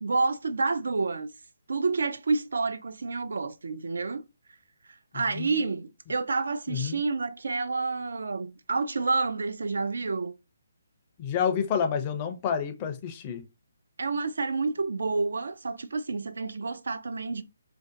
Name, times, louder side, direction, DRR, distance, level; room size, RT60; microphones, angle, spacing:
voice 1, 0.0-1.3 1.7-4.2 5.1-10.3 14.0-17.4, right 3 dB, 80° right, 0.3 m, -29 dB
voice 2, 11.2-13.4, left 7 dB, 25° left, 0.4 m, -28 dB
2.5 x 2.1 x 2.5 m
hypercardioid pair, 165°, 0 cm